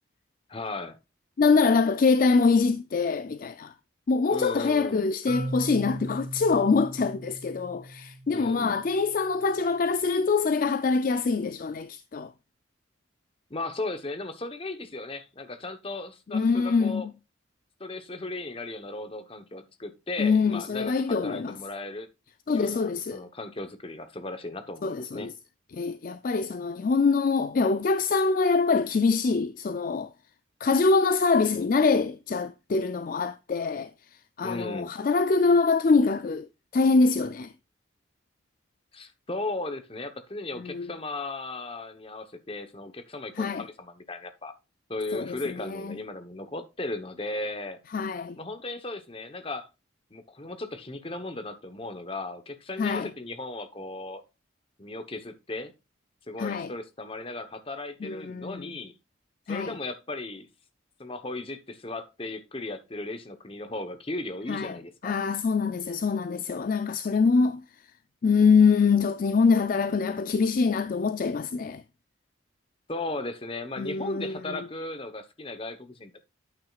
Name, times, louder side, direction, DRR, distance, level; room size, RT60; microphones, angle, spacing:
voice 1, 0.5-1.0 4.3-5.1 8.3-8.8 13.5-17.1 17.8-22.1 22.5-25.3 34.4-34.9 38.9-44.5 44.9-47.8 48.4-49.7 50.1-54.2 54.8-55.7 56.3-58.9 59.5-60.5 61.0-65.1 72.9-76.2, left 2 dB, 30° left, 0.9 m, -36 dB
voice 2, 1.4-3.7 4.1-12.3 16.3-17.1 20.2-21.6 22.5-23.2 24.8-25.3 25.7-30.1 30.6-33.9 34.4-37.5 40.6-40.9 43.4-43.7 45.1-46.0 47.9-48.4 52.8-53.1 56.4-56.7 58.0-58.7 59.5-59.7 64.5-64.8 65.0-67.6 68.2-71.8 73.8-74.6, left 4 dB, 45° left, 0.4 m, -24 dB
Marimba xylophone, 5.3-9.1, right 1 dB, 40° right, 1.8 m, -38 dB
9.1 x 8.7 x 2.4 m
head